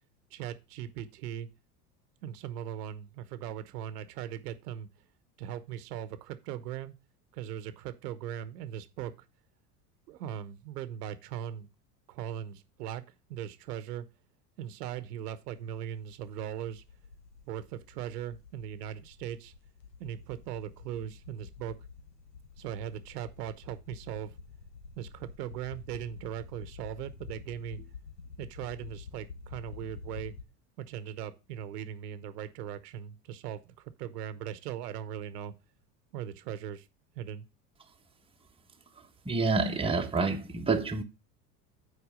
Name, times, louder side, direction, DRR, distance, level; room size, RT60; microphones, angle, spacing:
voice 1, 0.3-1.5 2.2-4.9 5.4-6.9 7.3-9.1 10.1-11.7 12.1-13.0 13.3-14.1 14.6-16.8 17.5-19.5 20.0-21.7 22.6-24.4 25.0-27.9 28.4-30.3 30.8-33.6 34.0-35.5 36.1-36.8 37.2-37.4, right 10 dB, 75° right, 1.0 m, -39 dB
sound 1, 15.5-30.4, left 5 dB, 90° left, 1.4 m, -49 dB
voice 2, 39.2-41.0, right 3 dB, 10° right, 1.3 m, -28 dB
8.1 x 4.8 x 5.0 m
hypercardioid pair, 85°, 48 cm